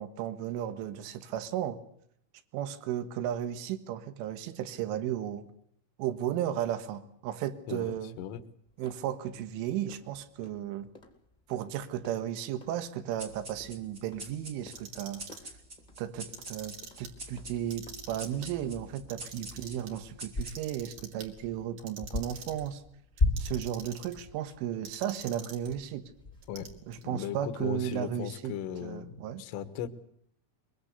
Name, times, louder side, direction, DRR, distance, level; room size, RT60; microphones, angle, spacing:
voice 1, 0.0-1.8 2.5-5.5 6.0-8.2 8.8-10.9 11.5-15.3 16.0-22.8 23.4-26.1 26.9-28.6 28.8-29.4, right 11 dB, 75° right, 12 dB, 3.9 m, -34 dB
voice 2, 7.7-8.4 26.5-26.7 27.0-29.9, left 10 dB, 75° left, 10 dB, 3.8 m, -37 dB
sound 1, 8.7-27.0, left 2 dB, 15° left, 1.8 m, -40 dB
sound 2, 13.2-20.9, right 1 dB, 25° right, 2.2 m, -47 dB
Clock, 14.6-15.5 16.2-17.1 17.6-18.5 19.0-19.9 20.4-21.3 21.8-22.7 23.2-24.2 24.9-25.8 26.4-27.0, right 6 dB, 50° right, 3.6 m, -46 dB
23.0 x 22.5 x 8.2 m, 0.70 s
omnidirectional pair, 5.9 m